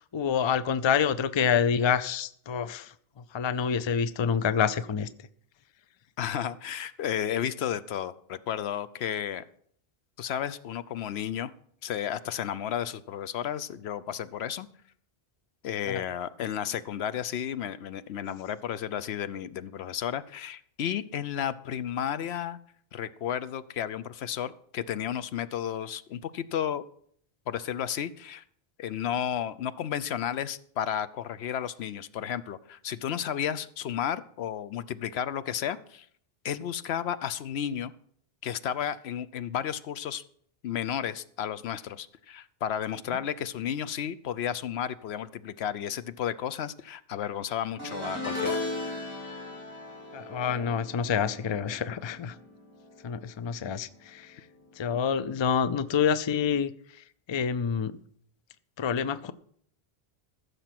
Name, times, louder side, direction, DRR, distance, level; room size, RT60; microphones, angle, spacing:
voice 1, 0.1-2.9 3.3-5.1 15.9-16.0 50.1-52.3 53.0-54.3 54.8-56.7 57.3-58.0 58.8-59.3, left 7 dB, 40° left, 0.4 m, -27 dB
voice 2, 6.2-9.4 10.2-11.5 11.8-14.7 15.6-22.6 22.9-26.8 27.5-28.4 28.8-36.1 36.4-37.9 38.4-40.2 40.6-48.6, left 9 dB, 80° left, 0.9 m, -33 dB
sound 1, 47.8-53.2 53.4-53.8 55.1-55.2, left 2 dB, 15° right, 4.8 m, -37 dB
15.0 x 6.8 x 5.9 m
omnidirectional pair, 1.1 m